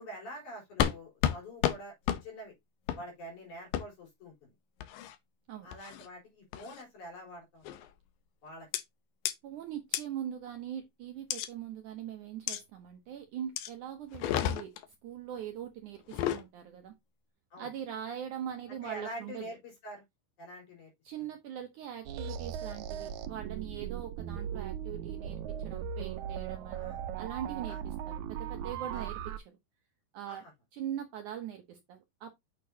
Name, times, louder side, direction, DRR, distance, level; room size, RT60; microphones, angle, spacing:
voice 1, 0.0-2.5 2.9-4.5 5.6-7.7 8.4-8.7 17.5-17.7 18.7-20.0 20.4-20.9 26.7-27.0 27.7-27.8 28.9-29.1 30.3-30.5, equal, 55° left, 5.3 m, -46 dB
sound 1, 0.8-1.0 1.2-1.4 1.6-1.8 2.1-2.2 2.9-3.0 3.7-3.8 4.8-5.2 5.7-6.1 6.5-6.8 7.7-7.9 8.7-8.8 9.3-9.4 9.9-10.0 11.3-11.5 12.5-12.6 13.6-13.7 14.1-14.9 16.0-16.4, left 11 dB, 75° left, 2.4 m, -31 dB
voice 2, 9.4-14.7 15.0-17.0 17.6-19.4 21.0-29.6 30.1-30.4 30.7-32.3, right 10 dB, 70° right, 2.0 m, -41 dB
sound 2, 22.1-29.4, right 9 dB, 85° right, 1.6 m, -38 dB
8.5 x 6.5 x 2.8 m
omnidirectional pair, 4.4 m